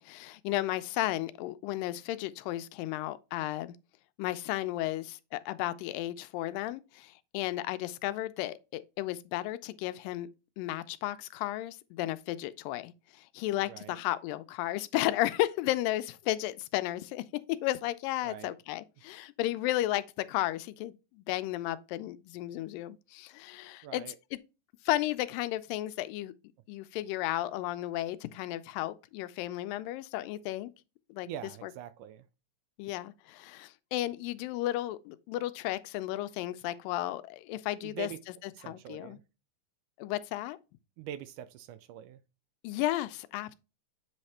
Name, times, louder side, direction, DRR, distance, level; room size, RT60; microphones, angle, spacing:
voice 1, 0.0-3.8 4.2-10.3 10.6-24.4 24.9-26.3 26.7-30.7 31.1-31.3 31.6-31.7 32.8-38.1 38.4-39.2 40.0-40.6 42.6-43.5, left 15 dB, 90° left, 2.3 m, -34 dB
voice 2, 18.2-18.6 23.8-24.2 31.2-32.3 37.8-38.2 38.6-39.2 41.0-42.2, right 10 dB, 80° right, 1.9 m, -43 dB
8.1 x 3.3 x 4.2 m
omnidirectional pair, 3.9 m